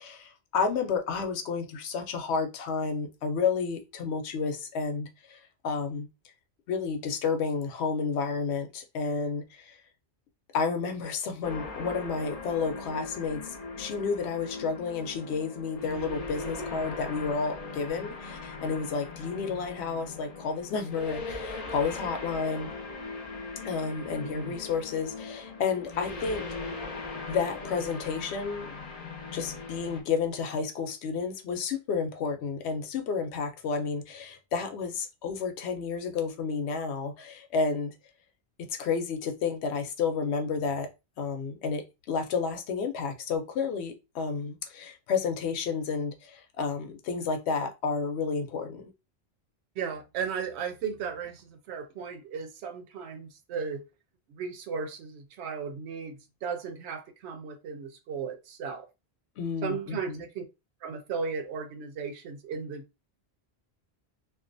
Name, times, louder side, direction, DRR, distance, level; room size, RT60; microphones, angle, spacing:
voice 1, 0.0-6.1 6.7-9.8 10.5-22.7 23.6-26.4 27.3-28.7 29.3-37.9 38.6-40.9 41.2-48.9 59.4-60.2, left 5 dB, 80° left, 0.8 m, -31 dB
sound 1, 11.4-30.0, left 3 dB, 40° left, 0.6 m, -39 dB
voice 2, 24.2-24.5 49.8-53.8 54.3-58.9 59.6-60.4 60.8-62.8, right 6 dB, 80° right, 0.8 m, -36 dB
2.4 x 2.2 x 2.5 m
omnidirectional pair, 1.1 m